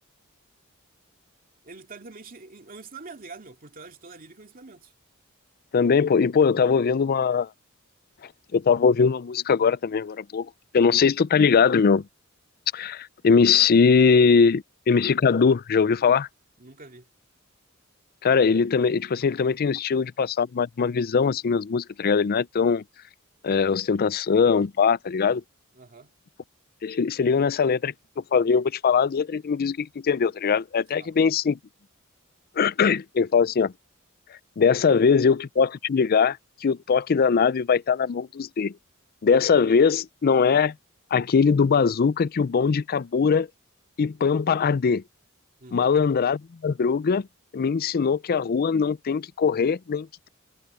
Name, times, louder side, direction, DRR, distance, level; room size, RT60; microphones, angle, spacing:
voice 1, 1.6-4.9 16.6-17.1 25.7-26.1 31.0-31.1 45.6-45.9, right 4 dB, 45° right, 2.3 m, -45 dB
voice 2, 5.7-7.5 8.5-12.0 12.7-16.3 18.2-22.8 23.4-25.4 26.8-31.6 32.6-33.7 34.6-38.7 39.2-40.7 41.1-43.5 44.0-45.0 45.7-47.3 47.5-50.3, left 5 dB, 45° left, 0.4 m, -21 dB
head